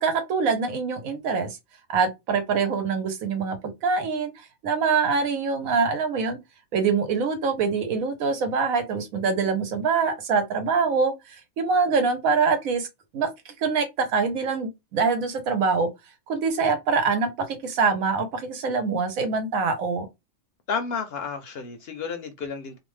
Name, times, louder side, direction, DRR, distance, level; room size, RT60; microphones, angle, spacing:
voice 1, 0.0-1.6 1.9-3.6 3.8-4.3 4.6-6.4 6.7-12.9 13.1-15.9 16.3-20.1, right 5 dB, 90° right, 1.2 m, -24 dB
voice 2, 20.7-22.8, left 5 dB, 65° left, 0.7 m, -31 dB
2.7 x 2.1 x 3.1 m
omnidirectional pair, 1.4 m